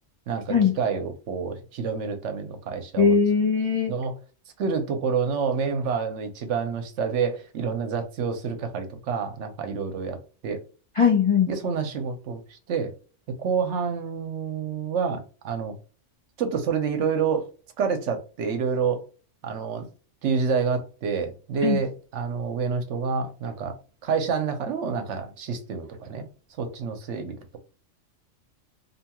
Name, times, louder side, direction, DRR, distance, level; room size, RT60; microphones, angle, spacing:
voice 1, 0.3-3.2 3.9-4.2 4.6-10.2 10.4-10.6 11.5-12.9 13.4-15.8 16.4-17.5 17.8-19.0 19.4-19.9 20.2-23.8 24.0-26.3 26.6-27.4, right 6 dB, 75° right, 0.9 m, -28 dB
voice 2, 3.0-3.9 11.0-11.5 21.6-21.8, left 6 dB, 40° left, 0.5 m, -20 dB
2.7 x 2.2 x 2.8 m
omnidirectional pair, 1.3 m